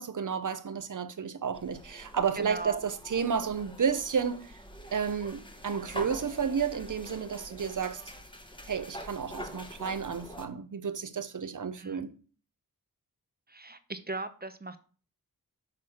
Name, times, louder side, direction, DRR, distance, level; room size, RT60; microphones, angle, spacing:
voice 1, 0.0-4.6 4.9-8.0 8.7-12.1, right 6 dB, 55° right, 0.8 m, -32 dB
sound 1, 1.5-10.5, equal, 15° left, 1.2 m, -45 dB
voice 2, 2.4-2.8 11.8-12.0 13.5-14.8, right 2 dB, 25° right, 0.7 m, -38 dB
6.0 x 5.9 x 4.9 m
wide cardioid pair, 70°, 37 cm